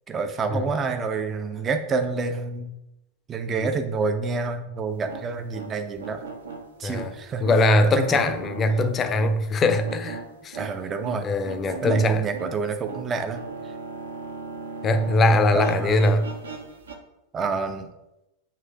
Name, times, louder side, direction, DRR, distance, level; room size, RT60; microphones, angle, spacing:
voice 1, 0.1-2.7 3.3-6.2 6.8-7.4 8.1-8.3 10.6-11.3 11.8-13.4 15.5-16.1 17.3-17.9, right 4 dB, 25° right, 7 dB, 0.5 m, -28 dB
sound 1, 4.9-15.2 15.5-17.0, right 5 dB, 70° right, 0.8 m, -38 dB
voice 2, 6.8-7.1 7.4-10.6 11.2-12.2 14.8-16.3, left 2 dB, 25° left, 9 dB, 0.6 m, -21 dB
7.4 x 3.2 x 4.7 m, 0.93 s
figure-of-eight pair, 90°, 0 cm